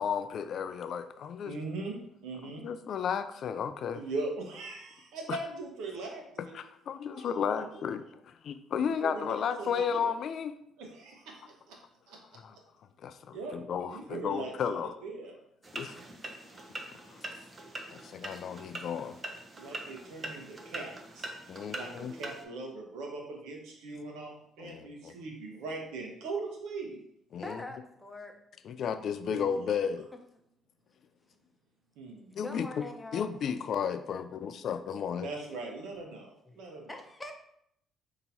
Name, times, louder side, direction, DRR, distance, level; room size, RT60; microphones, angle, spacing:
voice 1, 0.0-1.6 2.6-4.0 5.3-5.4 6.4-10.5 12.3-12.6 13.0-14.9 15.7-16.0 17.1-17.2 17.9-19.2 21.5-22.1 24.6-25.1 27.3-27.6 28.6-30.1 32.4-35.3, left 7 dB, 65° left, 11 dB, 0.3 m, -33 dB
voice 2, 1.4-2.0 2.2-2.6 3.9-6.5 7.1-7.8 9.0-10.2 10.8-11.1 11.7-11.8 12.1-12.2 13.3-15.3 19.6-21.3 21.7-24.3 24.6-27.0 29.2-29.8 32.0-32.3 33.8-33.9 35.2-37.0, right 3 dB, 85° right, 0 dB, 0.9 m, -40 dB
sound 1, 15.6-22.4, right 2 dB, 35° right, 0.7 m, -43 dB
voice 3, 27.4-28.3 32.3-33.3 36.5-36.6 36.9-37.3, left 2 dB, 15° left, 4 dB, 0.8 m, -43 dB
5.5 x 2.9 x 2.7 m, 0.72 s
supercardioid pair, 70°, 0 cm